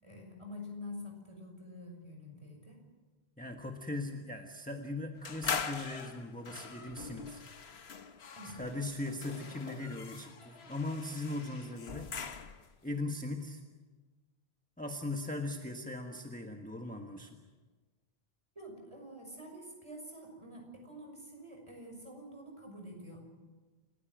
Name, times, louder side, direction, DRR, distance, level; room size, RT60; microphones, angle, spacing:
voice 1, 0.0-2.8 8.4-8.6 18.5-23.2, left 1 dB, 30° right, 1 dB, 6.3 m, -47 dB
voice 2, 3.4-7.4 8.4-12.1 12.8-13.6 14.8-17.4, left 2 dB, 10° left, 3 dB, 1.3 m, -39 dB
sound 1, 5.3-12.8, left 6 dB, 80° left, 1.4 m, -42 dB
29.0 x 15.5 x 7.6 m, 1.3 s
omnidirectional pair, 1.0 m